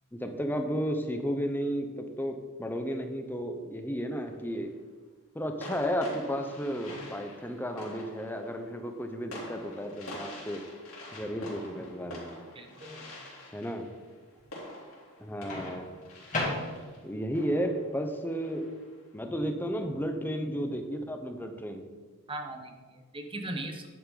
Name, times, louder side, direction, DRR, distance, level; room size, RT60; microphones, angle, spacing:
voice 1, 0.1-4.7 5.3-10.6 11.1-12.4 13.5-13.9 15.2-15.9 17.0-18.6 19.1-21.8, equal, 10° left, 5 dB, 0.8 m, -33 dB
sound 1, 4.1-4.7 5.6-19.0, left 1 dB, 80° left, 3.0 m, -46 dB
Microwave oven, 6.8-7.5 9.5-9.7 15.5-17.1, left 2 dB, 35° left, 2.4 m, -36 dB
voice 2, 12.5-13.1 22.3-23.9, right 1 dB, 25° right, 4 dB, 1.0 m, -39 dB
10.5 x 7.7 x 4.0 m, 1.4 s
head